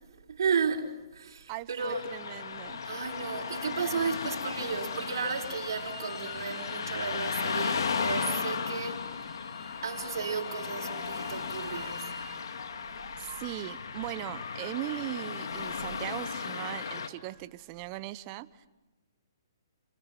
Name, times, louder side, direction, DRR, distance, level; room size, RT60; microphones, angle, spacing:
voice 1, 0.1-2.2 2.8-9.1 9.8-12.2, right 6 dB, 70° right, 4.5 m, -34 dB
voice 2, 1.5-2.8 13.2-18.7, right 16 dB, 35° right, 1.1 m, -39 dB
Car passing by / Traffic noise roadway noise, 1.8-17.1, left 5 dB, 75° left, 2.6 m, -35 dB
sound 1, 3.5-5.1 5.7-7.3 8.0-9.6 10.3-11.5 12.6-15.3 15.8-17.6, left 4 dB, 50° left, 5.0 m, -50 dB
Bowed string instrument, 4.8-12.3, equal, 5° left, 6.7 m, -51 dB
29.5 x 29.0 x 6.1 m
hypercardioid pair, 140°, 2 cm